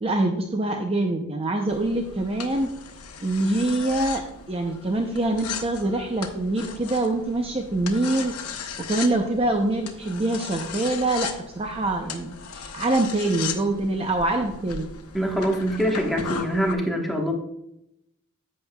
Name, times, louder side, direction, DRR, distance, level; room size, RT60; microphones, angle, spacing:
voice 1, 0.0-2.7 3.2-4.2 4.5-14.9, right 2 dB, 25° right, 4 dB, 0.6 m, -25 dB
sound 1, 1.7-16.7, left 6 dB, 90° left, 0.9 m, -37 dB
voice 2, 15.1-17.3, equal, ahead, 0 dB, 1.2 m, -24 dB
11.0 x 7.6 x 2.3 m, 0.80 s
head